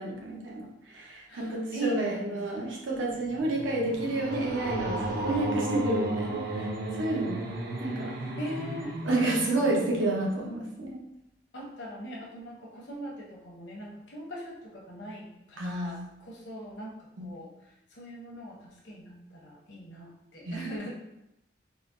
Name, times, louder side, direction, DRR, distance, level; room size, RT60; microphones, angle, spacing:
voice 1, 0.0-6.7 7.0-7.5 7.8-8.2 9.0-11.0 15.6-16.1 17.2-17.3 20.4-20.7, right 2 dB, 85° right, -2 dB, 0.7 m, -30 dB
voice 2, 1.3-2.4 5.7-6.2 8.4-9.0 11.5-20.9, right 1 dB, 70° left, -3 dB, 0.8 m, -39 dB
sound 1, 3.0-10.3, right 1 dB, 50° right, 0.5 m, -34 dB
3.8 x 2.0 x 2.5 m, 0.86 s
head